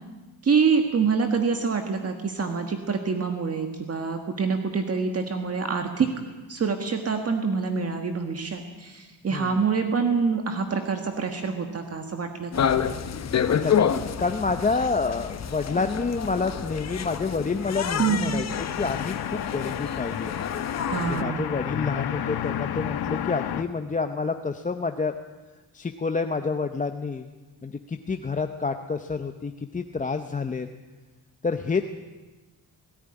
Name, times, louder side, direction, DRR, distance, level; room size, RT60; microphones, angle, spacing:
voice 1, 0.4-6.1 6.5-12.7 18.0-18.4 20.9-21.5, right 5 dB, 35° right, 5 dB, 1.6 m, -26 dB
voice 2, 9.3-9.6 13.3-18.4 18.8-20.3 21.0-25.1 25.7-27.3 27.6-30.7 31.4-31.9, left 4 dB, 20° left, 7 dB, 0.7 m, -28 dB
sound 1, 12.5-21.2, left 8 dB, 40° left, 1.0 m, -28 dB
sound 2, 18.5-23.6, left 10 dB, 70° left, 1.2 m, -31 dB
18.0 x 17.5 x 9.9 m, 1.2 s
wide cardioid pair, 165°, 39 cm